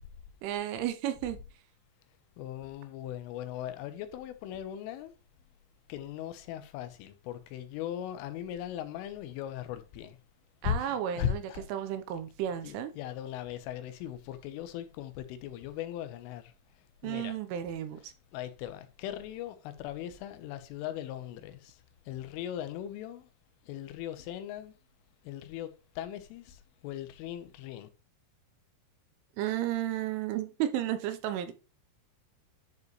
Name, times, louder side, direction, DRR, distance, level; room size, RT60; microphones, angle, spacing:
voice 1, 0.4-1.4 10.6-11.4 11.7-12.9 17.0-18.1 29.4-31.5, right 11 dB, 80° right, 3.3 m, -33 dB
voice 2, 2.4-5.1 5.9-10.2 10.6-11.7 12.6-16.5 17.0-17.4 18.3-23.3 23.6-24.7 25.2-27.9, left 10 dB, 85° left, 3.4 m, -39 dB
11.0 x 4.9 x 3.1 m
omnidirectional pair, 5.6 m